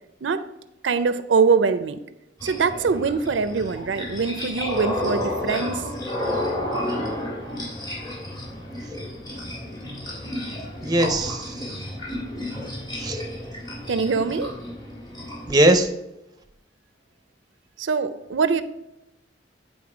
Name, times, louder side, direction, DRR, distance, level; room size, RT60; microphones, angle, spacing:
voice 1, 0.8-2.0 2.4-5.8 13.9-14.5 17.8-18.6, right 5 dB, 80° right, 12 dB, 0.5 m, -23 dB
sound 1, 2.4-15.6, left 1 dB, 20° left, 1.9 m, -31 dB
voice 2, 10.8-11.7 13.0-13.2 15.5-15.9, right 1 dB, 20° right, 6 dB, 0.6 m, -20 dB
9.5 x 3.9 x 4.9 m, 0.90 s
head